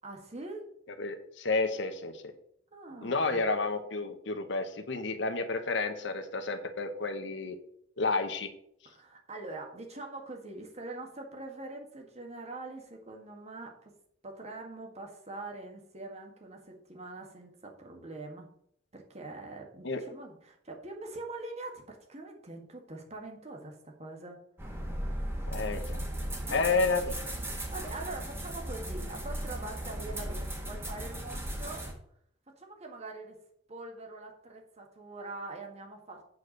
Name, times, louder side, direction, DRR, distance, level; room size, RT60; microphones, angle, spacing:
voice 1, 0.0-0.6 2.7-3.4 8.8-13.9 14.2-18.5 18.9-24.4 26.5-26.6 27.7-31.8 32.6-33.4 33.7-36.2, right 2 dB, 35° right, 1 dB, 1.8 m, -43 dB
voice 2, 1.0-2.1 3.0-7.6 8.0-8.5 19.8-20.0 25.5-26.0 26.5-27.2, left 3 dB, 70° left, 8 dB, 1.0 m, -30 dB
sound 1, 24.6-31.9, right 1 dB, 15° right, 1.7 m, -36 dB
8.2 x 4.7 x 6.5 m, 0.69 s
head